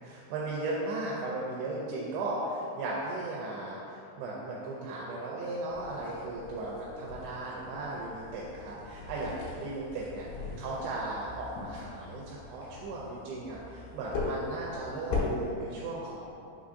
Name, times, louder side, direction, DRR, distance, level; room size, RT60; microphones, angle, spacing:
voice 1, 0.0-10.3 10.6-16.3, right 2 dB, 90° right, -5 dB, 2.6 m, -36 dB
sound 1, 5.7-15.5, left 3 dB, 90° left, 2.7 m, -39 dB
6.3 x 3.0 x 2.5 m, 2.6 s
omnidirectional pair, 4.6 m